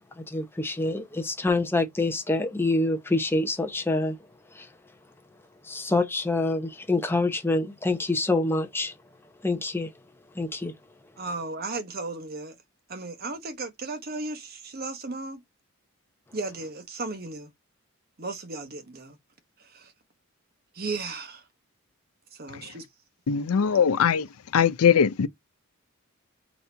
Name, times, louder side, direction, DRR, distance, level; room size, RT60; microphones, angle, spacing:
voice 1, 0.3-4.2 4.5-4.7 5.6-8.9 9.4-9.9 10.4-10.7, left 2 dB, 10° left, 0.7 m, -26 dB
voice 2, 11.2-12.6 12.9-15.4 16.3-17.5 18.2-19.2 19.6-19.9 20.7-21.4 22.3-22.8, right 3 dB, 45° right, 0.9 m, -35 dB
voice 3, 23.3-24.3 24.5-25.3, left 7 dB, 80° left, 0.5 m, -21 dB
4.1 x 2.8 x 3.3 m
head